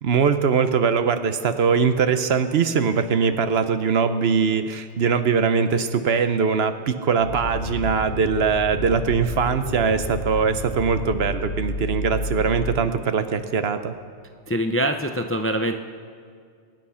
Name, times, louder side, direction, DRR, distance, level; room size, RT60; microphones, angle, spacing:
voice 1, 0.0-13.9, right 6 dB, 65° right, 10 dB, 1.0 m, -21 dB
sound 1, 7.2-13.0, left 2 dB, 90° left, 1.5 m, -31 dB
voice 2, 14.5-15.7, right 1 dB, 20° left, 6 dB, 0.4 m, -24 dB
22.5 x 9.2 x 5.6 m, 2.2 s
omnidirectional pair, 1.1 m